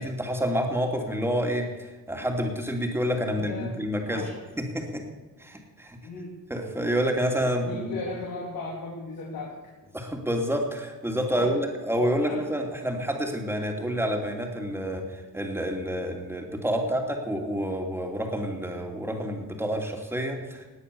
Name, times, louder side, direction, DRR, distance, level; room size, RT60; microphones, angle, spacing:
voice 1, 0.0-4.3 4.6-5.0 5.4-6.0 6.5-8.0 9.9-20.7, equal, 5° right, 2 dB, 2.7 m, -28 dB
voice 2, 3.3-3.8 4.1-4.3 6.0-6.3 7.6-9.5 11.3-11.5 12.2-12.4 16.8-16.9, left 3 dB, 75° left, -4 dB, 3.8 m, -36 dB
18.5 x 9.7 x 7.0 m, 1.3 s
cardioid pair, 130°, 34 cm